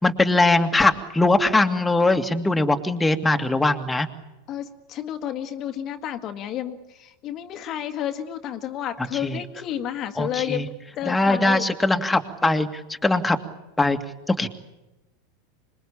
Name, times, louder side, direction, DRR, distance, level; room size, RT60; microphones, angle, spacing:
voice 1, 0.0-4.1 9.0-9.4 10.2-10.7 11.1-13.4 13.8-14.0 14.3-14.5, left 2 dB, 10° left, 5 dB, 2.1 m, -21 dB
voice 2, 4.5-11.6, left 10 dB, 40° left, 7 dB, 1.7 m, -31 dB
26.0 x 22.0 x 8.6 m, 0.98 s
figure-of-eight pair, 85°, 0 cm